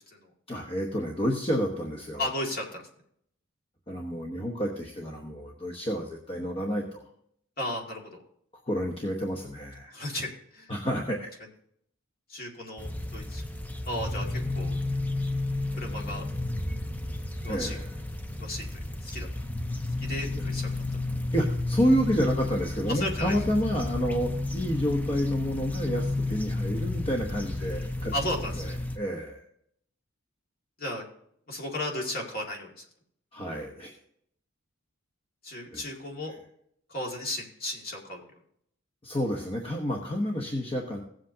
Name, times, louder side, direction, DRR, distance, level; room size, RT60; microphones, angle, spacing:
voice 1, 0.5-2.3 3.9-7.0 8.7-10.0 10.7-11.3 17.5-17.9 20.3-20.4 21.3-28.1 28.6-29.4 33.3-33.9 35.7-35.8 39.0-41.0, equal, 25° left, 1 dB, 1.0 m, -29 dB
voice 2, 2.2-2.8 7.6-8.0 9.9-10.3 10.5-10.7 12.3-13.4 13.9-14.8 15.8-16.2 17.4-17.7 18.4-18.7 19.0-19.3 20.0-20.7 22.9-23.3 27.7-27.9 28.1-28.8 30.8-31.0 31.5-32.8 35.4-36.3 36.9-38.2, left 1 dB, 45° left, 0 dB, 2.2 m, -34 dB
sound 1, 12.8-29.0, left 2 dB, 5° left, 0.5 m, -32 dB
17.0 x 7.8 x 2.8 m, 0.70 s
head